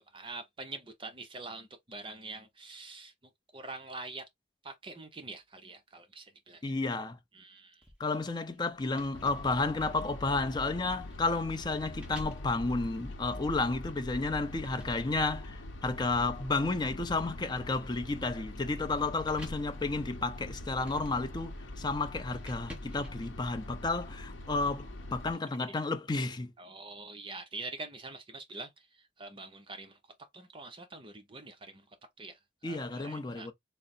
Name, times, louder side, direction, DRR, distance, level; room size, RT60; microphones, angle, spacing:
voice 1, 0.0-3.1 3.5-4.3 4.6-6.7 7.3-7.9 13.2-13.3 26.6-30.0 30.3-33.5, right 3 dB, 25° right, 0.6 m, -45 dB
voice 2, 6.6-7.2 8.0-26.5 32.6-33.5, left 3 dB, 20° left, 0.4 m, -32 dB
sound 1, 7.8-13.6 14.2-23.7, equal, 5° right, 1.0 m, -53 dB
sound 2, 9.1-25.3, left 1 dB, 80° left, 0.7 m, -43 dB
3.7 x 2.0 x 4.1 m
head